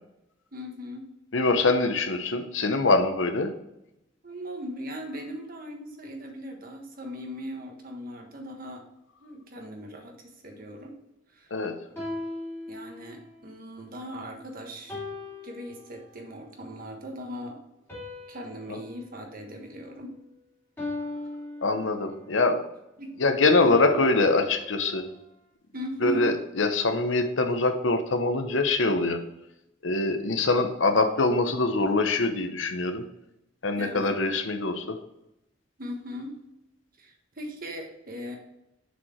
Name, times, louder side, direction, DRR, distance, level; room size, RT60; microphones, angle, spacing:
voice 1, 0.5-1.1 4.2-8.8 9.2-11.0 11.3-11.5 12.7-15.0 15.4-17.6 18.3-20.1 23.0-23.2 23.6-23.9 25.7-26.3 33.8-34.2 35.8-36.4 37.0-38.4, equal, 50° right, 2 dB, 1.4 m, -39 dB
voice 2, 1.3-3.5 11.5-11.7 18.7-18.8 21.6-22.6 23.2-25.1 26.0-29.2 29.8-33.0 33.6-34.9, left 3 dB, 75° left, 7 dB, 0.9 m, -24 dB
sound 1, 12.0-13.3 14.9-16.3 17.9-20.2 20.8-22.3 23.7-25.3, left 2 dB, 10° left, 2.7 m, -39 dB
6.9 x 4.7 x 4.4 m, 0.87 s
head